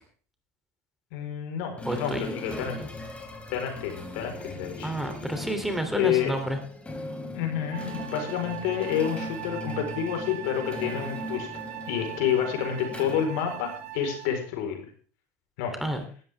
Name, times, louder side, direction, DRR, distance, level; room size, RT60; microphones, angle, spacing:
voice 1, 1.1-2.7 3.5-4.9 5.9-6.3 7.3-11.5 11.9-14.9 15.6-15.7, left 9 dB, 70° left, 4 dB, 4.6 m, -29 dB
sound 1, 1.8-14.0, left 1 dB, 15° left, 4.0 m, -39 dB
voice 2, 1.8-2.9 4.8-6.6 15.8-16.0, right 1 dB, 5° right, 5 dB, 3.1 m, -30 dB
Wind instrument woodwind instrument, 7.7-14.5, right 12 dB, 75° right, 1.4 m, -40 dB
17.0 x 13.0 x 3.6 m, 0.42 s
supercardioid pair, 100°, 8 cm